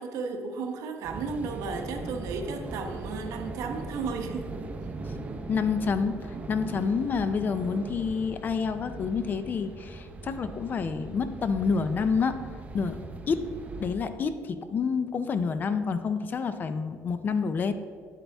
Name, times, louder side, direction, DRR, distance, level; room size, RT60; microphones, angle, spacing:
voice 1, 0.0-4.5, right 4 dB, 75° right, 4 dB, 1.0 m, -34 dB
sound 1, 1.0-13.9, right 2 dB, 25° right, 0.6 m, -39 dB
voice 2, 5.5-12.4 12.7-13.0 13.3-13.4 13.8-17.7, left 5 dB, 30° left, 10 dB, 0.4 m, -28 dB
9.6 x 8.2 x 3.4 m, 2.1 s
cardioid pair, 160°, 6 cm